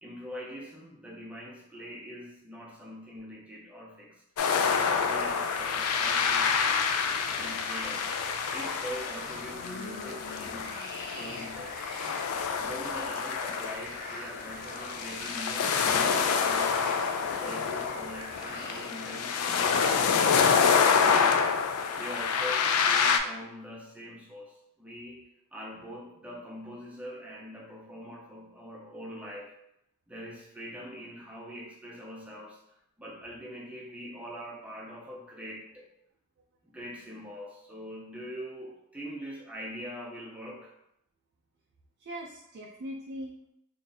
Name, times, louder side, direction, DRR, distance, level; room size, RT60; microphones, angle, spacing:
voice 1, 0.0-4.2 4.7-6.9 7.3-8.1 8.5-10.8 11.2-11.8 12.6-17.0 17.4-21.3 21.9-25.2 25.5-29.5 30.1-35.9 36.6-40.7, equal, 5° right, -3 dB, 0.6 m, -43 dB
sound 1, 4.4-23.2, left 6 dB, 85° left, 0.3 m, -27 dB
sound 2, 4.6-18.8, left 2 dB, 45° left, 0.6 m, -42 dB
voice 2, 42.0-43.5, equal, 50° right, 1 dB, 0.4 m, -41 dB
2.6 x 2.5 x 3.9 m, 0.79 s
head